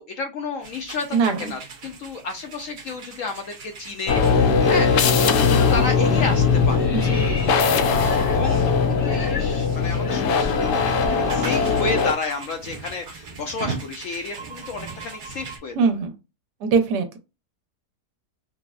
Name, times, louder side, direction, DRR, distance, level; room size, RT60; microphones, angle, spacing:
voice 1, 0.0-4.9 5.2-6.9 8.3-15.9, left 4 dB, 70° left, 5 dB, 0.8 m, -31 dB
sound 1, 0.6-15.6, right 4 dB, 60° right, 0.5 m, -39 dB
voice 2, 1.1-1.5 7.0-7.2 15.8-16.1 16.6-17.2, right 5 dB, 80° right, 7 dB, 1.3 m, -21 dB
sound 2, 4.1-12.1, left 5 dB, 85° left, 1.2 m, -20 dB
sound 3, 6.7-11.0 11.3-11.5 11.8-15.8, left 2 dB, 35° left, 0.6 m, -39 dB
5.0 x 2.0 x 2.3 m, 0.27 s
omnidirectional pair, 1.8 m